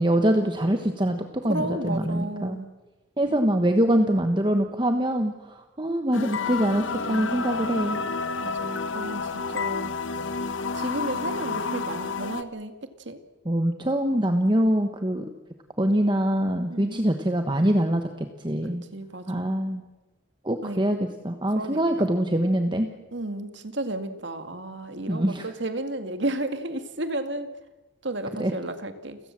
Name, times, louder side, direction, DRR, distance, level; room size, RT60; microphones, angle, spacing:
voice 1, 0.0-2.6 3.2-8.0 13.4-15.3 15.8-18.8 19.3-19.8 20.4-22.9 25.1-25.5 28.4-28.5, right 1 dB, 25° right, 6 dB, 1.2 m, -24 dB
voice 2, 1.5-2.7 8.4-10.0 10.7-13.2 16.7-17.0 18.7-19.6 20.6-20.8 21.6-22.1 23.1-27.5 28.0-29.2, right 1 dB, 65° right, 9 dB, 2.1 m, -33 dB
sound 1, 6.1-12.4, left 4 dB, 80° left, 1.1 m, -30 dB
29.5 x 16.5 x 7.6 m, 1.2 s
head